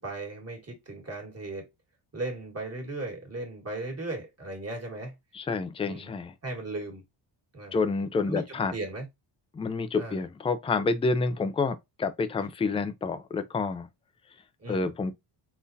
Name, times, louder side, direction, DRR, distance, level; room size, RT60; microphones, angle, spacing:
voice 1, 0.0-1.7 2.1-5.1 5.8-6.1 6.4-7.0 7.5-7.8 8.3-9.1 10.0-10.2 14.6-14.9, right 2 dB, 30° right, 1.6 m, -37 dB
voice 2, 5.3-6.3 7.7-8.7 9.5-13.9 14.7-15.1, left 4 dB, 15° left, 0.3 m, -28 dB
3.8 x 2.2 x 2.6 m
cardioid pair, 90°, 50 cm